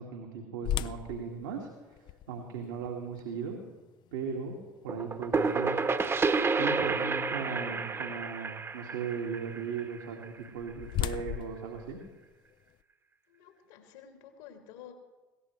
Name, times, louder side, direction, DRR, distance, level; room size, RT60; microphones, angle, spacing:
voice 1, 0.0-1.7 2.3-3.6 4.1-4.6 4.8-5.8 6.6-12.0, right 6 dB, 70° right, 0 dB, 2.0 m, -37 dB
sound 1, 0.6-6.6 7.1-7.2 7.8-8.1 10.1-12.8, left 12 dB, 50° left, 0.5 m, -39 dB
sound 2, 4.9-10.5, right 4 dB, 25° right, 1.1 m, -30 dB
voice 2, 7.3-7.9 13.3-14.9, left 8 dB, 65° left, 4 dB, 2.5 m, -52 dB
21.5 x 17.5 x 3.2 m, 1.2 s
figure-of-eight pair, 65°, 10 cm